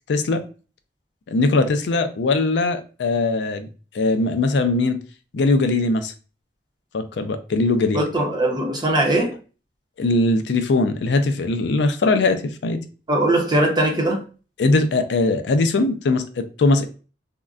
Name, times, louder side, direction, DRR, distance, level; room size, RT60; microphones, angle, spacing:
voice 1, 0.1-0.4 1.3-3.7 3.9-5.0 5.3-6.1 6.9-8.0 10.0-12.8 14.6-16.9, left 3 dB, 80° left, 0.4 m, -20 dB
voice 2, 7.9-9.4 13.1-14.2, right 1 dB, 25° right, 0.7 m, -20 dB
3.6 x 2.1 x 2.3 m
head